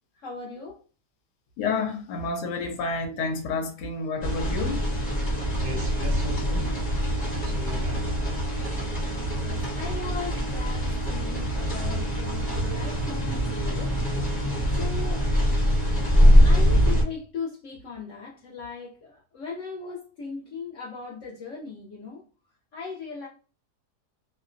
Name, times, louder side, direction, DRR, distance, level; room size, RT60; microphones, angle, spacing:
voice 1, 0.1-0.8 9.4-14.0 14.8-15.3 16.4-22.2 22.7-23.3, left 4 dB, 70° left, 0.7 m, -38 dB
voice 2, 1.6-4.9, left 4 dB, 90° left, 1.2 m, -29 dB
sound 1, 4.2-17.0, equal, 20° left, 0.7 m, -23 dB
voice 3, 5.5-6.9 7.3-8.2, equal, 70° right, 1.0 m, -38 dB
2.8 x 2.0 x 2.4 m
omnidirectional pair, 1.8 m